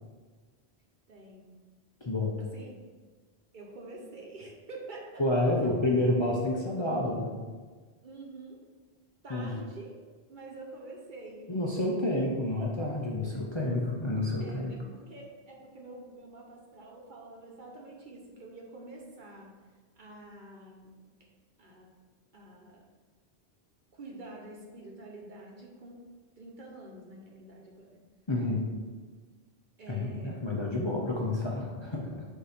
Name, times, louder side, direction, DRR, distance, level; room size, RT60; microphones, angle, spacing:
voice 1, 1.1-1.6 2.4-2.7 3.5-5.2 8.0-8.6 9.2-10.0 10.3-11.5 13.2-13.4 14.4-19.5 20.0-20.9 21.6-21.8 22.3-22.8 23.9-26.0 26.4-27.9 29.8-30.3, right 2 dB, 50° right, -1 dB, 1.0 m, -47 dB
voice 2, 2.0-2.4 5.2-7.4 9.3-9.5 11.5-14.7 28.3-28.7 29.9-32.3, left 1 dB, 30° left, -3 dB, 0.6 m, -29 dB
6.7 x 2.8 x 5.0 m, 1.4 s
omnidirectional pair, 1.1 m